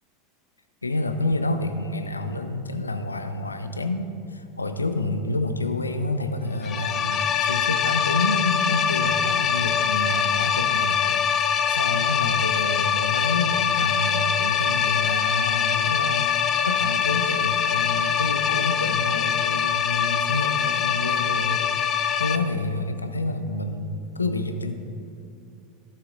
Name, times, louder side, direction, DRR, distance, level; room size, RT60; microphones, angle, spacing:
voice 1, 0.8-21.6 22.2-24.7, left 2 dB, 85° left, 8 dB, 0.5 m, -28 dB
sound 1, 6.6-22.4, left 8 dB, 35° left, 0.5 m, -23 dB
15.0 x 6.8 x 2.6 m, 2.4 s
figure-of-eight pair, 80°, 0 cm